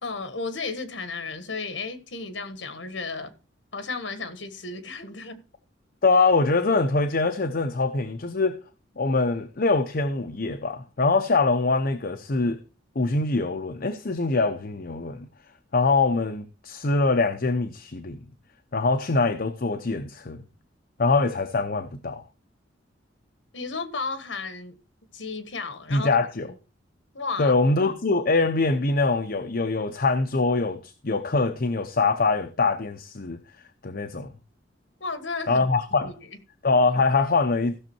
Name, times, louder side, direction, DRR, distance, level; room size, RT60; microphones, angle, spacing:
voice 1, 0.0-3.3 3.7-5.4 23.5-24.8 25.1-26.2 26.5-26.6 27.1-27.6 35.0-35.7 36.0-36.1, left 4 dB, 75° left, 1.5 m, -33 dB
voice 2, 6.0-8.6 9.0-12.6 13.0-15.3 15.7-18.2 18.7-20.4 21.0-22.2 25.9-26.5 27.4-33.4 33.8-34.3 35.5-36.1 36.6-37.7, left 3 dB, 50° left, 0.8 m, -23 dB
15.5 x 6.3 x 4.5 m
head